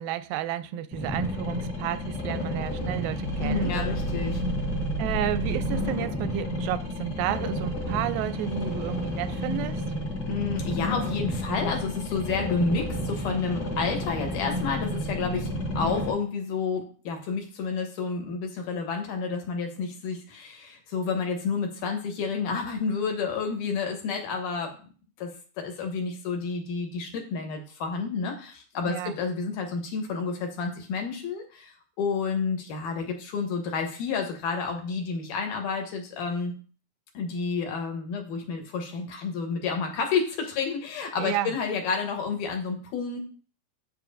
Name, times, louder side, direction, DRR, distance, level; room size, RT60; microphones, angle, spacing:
voice 1, 0.0-3.7 5.0-9.9 28.9-29.2 41.2-41.5, right 11 dB, 90° right, 2.3 m, -31 dB
sound 1, 0.9-16.1, left 1 dB, 45° left, 1.4 m, -31 dB
sound 2, 3.3-5.9, right 2 dB, 85° left, 2.3 m, -32 dB
voice 2, 3.4-4.4 10.3-15.5 15.8-24.8 25.2-36.6 37.1-43.2, left 5 dB, 70° left, 2.7 m, -30 dB
7.6 x 7.4 x 2.6 m
omnidirectional pair, 3.9 m